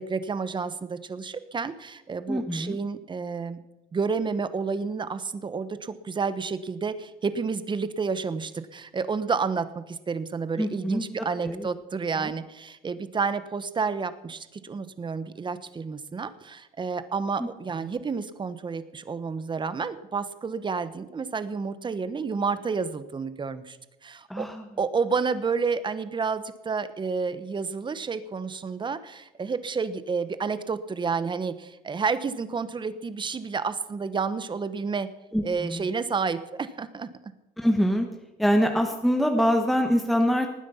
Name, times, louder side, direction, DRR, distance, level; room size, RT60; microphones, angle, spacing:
voice 1, 0.0-3.6 3.9-23.8 24.0-24.5 24.8-35.1 35.4-37.1, right 5 dB, 30° right, 13 dB, 1.2 m, -30 dB
voice 2, 2.3-2.8 10.6-11.0 11.4-11.7 12.1-12.3 17.4-17.5 17.8-17.9 24.3-24.6 35.3-35.8 37.6-38.1 38.4-40.5, equal, ahead, 4 dB, 1.3 m, -24 dB
19.0 x 9.7 x 5.7 m, 0.99 s
cardioid pair, 110°, 17 cm